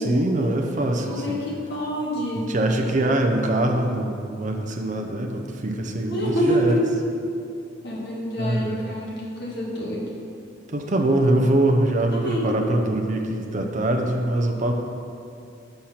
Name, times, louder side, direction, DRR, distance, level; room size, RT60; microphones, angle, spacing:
voice 1, 0.0-1.4 2.4-6.8 8.4-8.8 10.7-14.7, right 1 dB, 40° right, 3 dB, 0.6 m, -23 dB
voice 2, 1.1-2.5 6.1-6.8 7.8-10.2 12.1-12.5, equal, 55° left, -4 dB, 1.5 m, -27 dB
6.5 x 4.3 x 5.7 m, 2.5 s
head